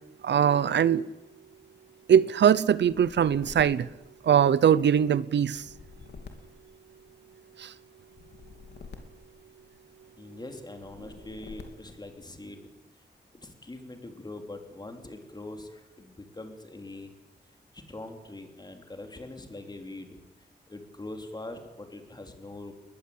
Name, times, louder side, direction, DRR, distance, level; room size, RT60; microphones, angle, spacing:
voice 1, 0.2-1.1 2.1-3.9 4.2-5.7 7.6-7.7, right 8 dB, 80° right, 0.7 m, -22 dB
sound 1, 2.8-4.7 5.4-7.4 8.1-10.0 10.8-12.1, left 5 dB, 70° left, 3.4 m, -48 dB
voice 2, 10.2-12.7 13.4-17.1 17.7-20.2 20.7-22.7, left 2 dB, 25° left, 3.3 m, -42 dB
21.5 x 20.5 x 8.6 m
wide cardioid pair, 135°, 18 cm